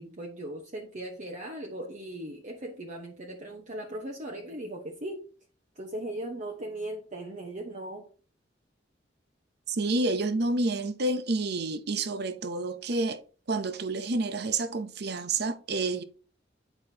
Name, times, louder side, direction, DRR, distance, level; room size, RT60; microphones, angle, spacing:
voice 1, 0.0-5.2 5.8-8.1, right 1 dB, 45° right, 1.0 m, -38 dB
voice 2, 9.7-13.2 13.5-16.0, right 2 dB, 65° right, 0.7 m, -29 dB
8.9 x 5.8 x 2.8 m
head